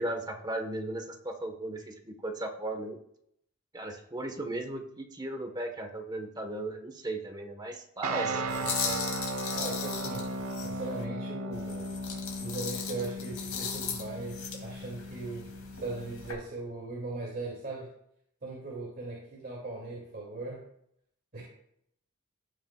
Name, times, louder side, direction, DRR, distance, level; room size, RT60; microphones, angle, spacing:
voice 1, 0.0-3.0 3.7-8.4, right 1 dB, 20° right, 3 dB, 1.4 m, -36 dB
sound 1, 8.0-16.3, right 1 dB, 85° right, 1.1 m, -36 dB
voice 2, 8.2-9.2 9.5-10.3 10.6-11.9 12.4-15.5 15.7-17.9 18.4-20.6 21.3-21.4, right 2 dB, 45° right, -4 dB, 2.7 m, -39 dB
sound 2, 8.5-11.0 11.5-16.3, left 6 dB, 75° left, 2.5 m, -38 dB
17.0 x 7.4 x 2.4 m, 0.72 s
head